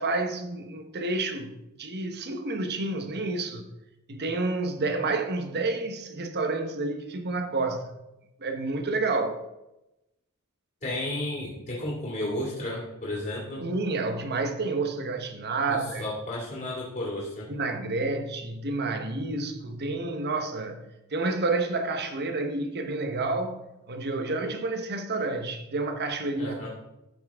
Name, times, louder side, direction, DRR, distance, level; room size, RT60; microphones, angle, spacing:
voice 1, 0.0-1.5 1.8-3.7 4.1-7.9 8.4-9.4 13.6-16.1 17.5-20.8 21.1-23.6 23.9-26.7, right 3 dB, 50° right, 1.0 m, -29 dB
voice 2, 10.8-13.7 15.7-17.5 26.4-26.7, left 1 dB, 35° left, 2.3 m, -33 dB
13.0 x 5.8 x 3.6 m
head